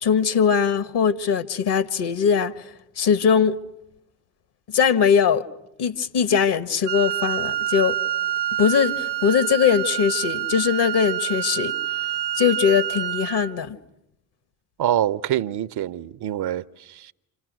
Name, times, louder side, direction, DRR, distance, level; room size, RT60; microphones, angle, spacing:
voice 1, 0.0-2.6 3.0-3.6 4.7-5.4 5.8-7.9 8.6-11.7 12.3-13.8, left 7 dB, 55° left, 1.7 m, -21 dB
Wind instrument woodwind instrument, 6.8-13.5, right 12 dB, 90° right, 0.9 m, -27 dB
voice 2, 14.8-17.1, right 11 dB, 50° right, 0.9 m, -25 dB
29.5 x 27.0 x 6.3 m
hypercardioid pair, 55°, 49 cm